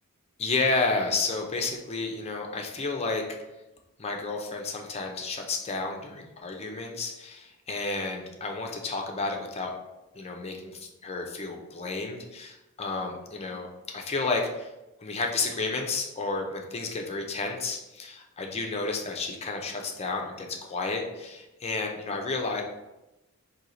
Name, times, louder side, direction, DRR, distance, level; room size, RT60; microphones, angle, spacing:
voice 1, 0.4-3.2 4.0-9.7 10.1-13.7 13.9-14.7 15.0-22.6, left 3 dB, 30° left, 2 dB, 0.5 m, -31 dB
4.5 x 2.7 x 3.9 m, 0.98 s
head